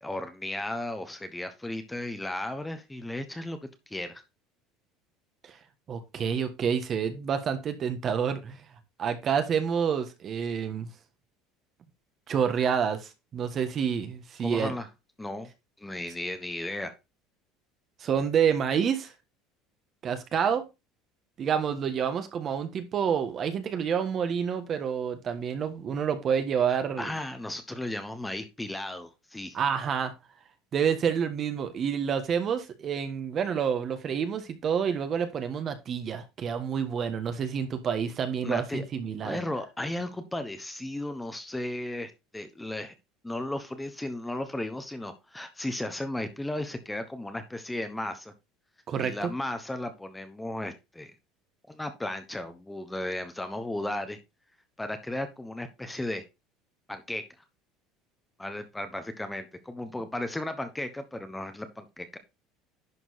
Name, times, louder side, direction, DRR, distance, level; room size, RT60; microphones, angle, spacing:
voice 1, 0.0-3.6 3.9-4.2 14.4-14.9 15.2-15.5 15.8-16.9 26.7-29.6 38.4-38.8 39.2-42.9 43.2-48.3 49.0-51.1 51.7-54.2 54.8-56.2 56.9-57.2 58.4-62.2, left 1 dB, 5° left, 9 dB, 1.1 m, -35 dB
voice 2, 5.9-8.6 9.0-10.9 12.3-14.7 18.0-19.1 20.0-20.6 21.4-27.1 29.5-30.1 30.7-39.4 48.9-49.3, right 7 dB, 35° right, 9 dB, 1.5 m, -28 dB
11.0 x 4.5 x 4.1 m, 0.25 s
supercardioid pair, 125°, 0 cm